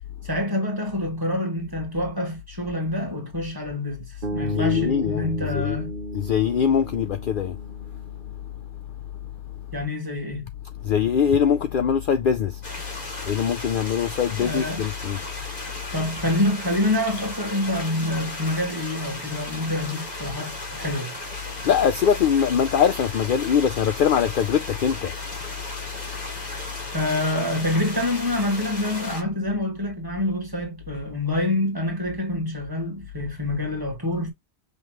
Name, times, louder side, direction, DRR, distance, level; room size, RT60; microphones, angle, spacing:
voice 1, 0.2-6.0 9.7-10.5 14.4-14.8 15.9-21.1 26.9-34.3, left 1 dB, 20° right, 1.8 m, -26 dB
sound 1, 4.2-8.4, right 2 dB, 50° right, 1.3 m, -34 dB
voice 2, 4.4-5.8 6.1-7.6 10.8-12.6 13.2-15.2 21.6-25.1, left 8 dB, 60° left, 0.6 m, -22 dB
sound 2, 12.6-29.2, left 1 dB, 40° left, 1.8 m, -36 dB
5.8 x 3.0 x 2.9 m
omnidirectional pair, 1.2 m